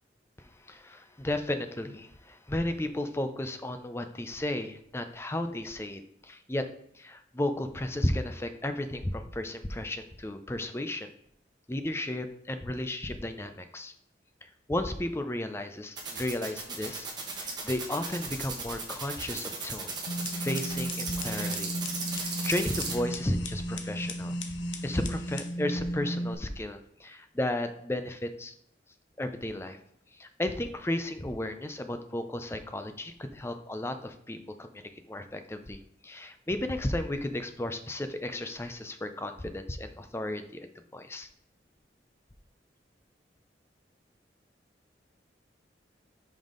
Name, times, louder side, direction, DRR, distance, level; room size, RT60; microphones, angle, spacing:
voice 1, 0.4-6.7 6.9-11.1 11.7-13.9 14.4-17.1 17.4-19.9 20.4-21.8 22.1-24.3 24.8-28.5 29.2-29.8 30.1-41.3, left 1 dB, 15° left, 8 dB, 0.4 m, -34 dB
sound 1, 16.0-22.9, right 5 dB, 25° right, 1.1 m, -35 dB
sound 2, 20.1-26.3, equal, 90° left, 0.7 m, -34 dB
5.4 x 5.2 x 3.8 m, 0.73 s
head